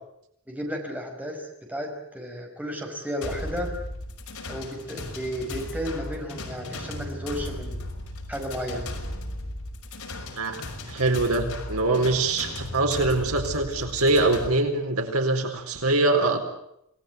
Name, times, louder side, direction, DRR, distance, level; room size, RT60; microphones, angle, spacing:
voice 1, 0.5-3.7 4.5-7.8 8.3-8.9, equal, 5° right, 1 dB, 5.4 m, -33 dB
sound 1, 3.2-14.5, left 1 dB, 75° left, 5.7 m, -36 dB
voice 2, 10.9-16.4, right 2 dB, 80° right, 5 dB, 4.3 m, -23 dB
28.0 x 19.0 x 9.5 m, 0.77 s
head